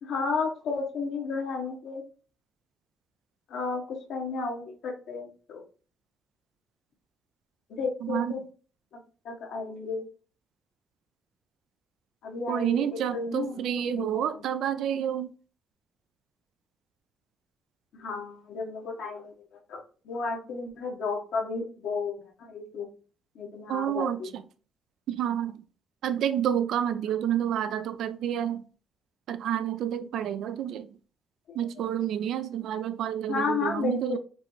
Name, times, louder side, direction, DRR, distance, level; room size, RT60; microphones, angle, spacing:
voice 1, 0.0-2.0 3.5-5.6 7.7-8.4 9.2-10.0 12.2-12.9 13.1-14.2 17.9-19.3 19.7-19.8 20.0-22.9 23.3-24.3 31.5-31.6 33.3-34.2, left 4 dB, 80° left, 1.2 m, -32 dB
voice 2, 8.0-8.4 12.5-15.3 23.7-24.4 25.1-25.6 26.0-28.7 29.3-31.0 31.5-34.2, right 10 dB, 75° right, 0.4 m, -29 dB
5.3 x 2.6 x 3.0 m
cardioid pair, 90°, 0 cm